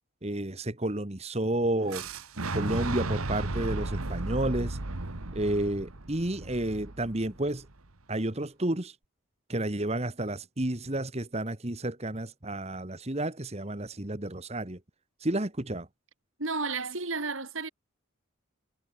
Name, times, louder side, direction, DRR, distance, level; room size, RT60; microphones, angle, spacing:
voice 1, 0.2-2.1 2.5-4.8 5.3-7.7 8.1-9.0 9.5-14.8 15.2-15.9, right 1 dB, 30° right, 1.6 m, -31 dB
Fire / Explosion, 1.9-7.8, right 2 dB, 85° right, 1.7 m, -35 dB
voice 2, 16.4-17.7, right 4 dB, 65° right, 3.6 m, -32 dB
head